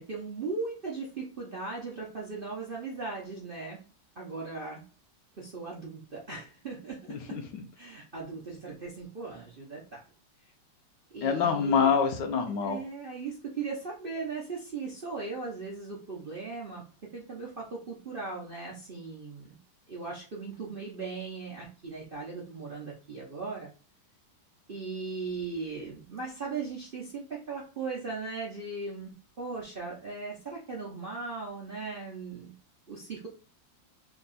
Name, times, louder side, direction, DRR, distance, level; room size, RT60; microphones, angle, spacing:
voice 1, 0.0-3.8 4.2-4.8 5.4-7.0 7.8-10.0 11.1-11.9 12.6-16.8 17.1-19.5 19.9-23.7 24.7-32.5 32.9-33.3, right 4 dB, 50° right, -4 dB, 0.6 m, -38 dB
voice 2, 7.1-7.6 11.2-12.8, left 6 dB, 75° left, 5 dB, 1.3 m, -26 dB
3.5 x 2.3 x 4.0 m, 0.36 s
omnidirectional pair, 2.0 m